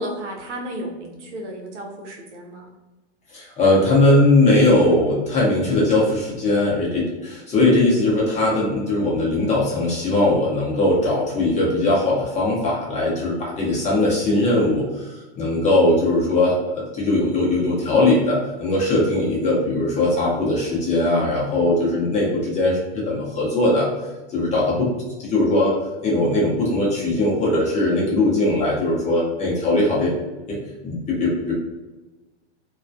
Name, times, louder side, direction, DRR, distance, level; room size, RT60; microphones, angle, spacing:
voice 1, 0.0-2.7, equal, 85° right, 1 dB, 0.7 m, -33 dB
voice 2, 3.3-15.1 15.4-23.9 24.3-24.9 25.2-25.7 26.0-30.1 30.5-31.5, left 2 dB, 20° left, -5 dB, 0.7 m, -20 dB
2.2 x 2.2 x 2.6 m, 1.1 s
hypercardioid pair, 125°, 35 cm